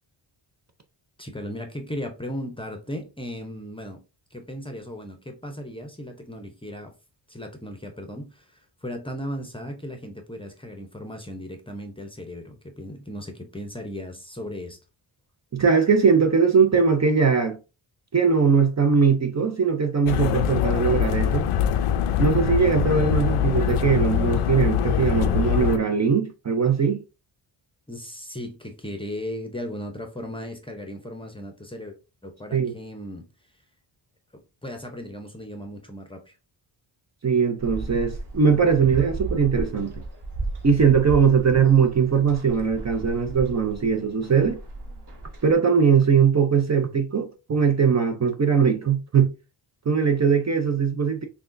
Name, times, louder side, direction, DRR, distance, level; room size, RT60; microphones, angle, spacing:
voice 1, 1.2-4.0 4.3-6.9 7.3-14.8 27.9-32.0 32.2-33.3 34.3-36.4, equal, 10° left, 0.6 m, -36 dB
voice 2, 15.5-17.6 18.1-21.5 22.2-27.0 32.5-32.7 37.2-39.9 40.6-44.6 45.4-49.3 49.9-51.2, right 6 dB, 35° right, 0.5 m, -20 dB
sound 1, 20.1-25.8, left 9 dB, 90° left, 0.6 m, -23 dB
sound 2, 37.6-45.5, right 2 dB, 50° right, 1.5 m, -35 dB
5.8 x 2.2 x 2.5 m
wide cardioid pair, 115°, 50 cm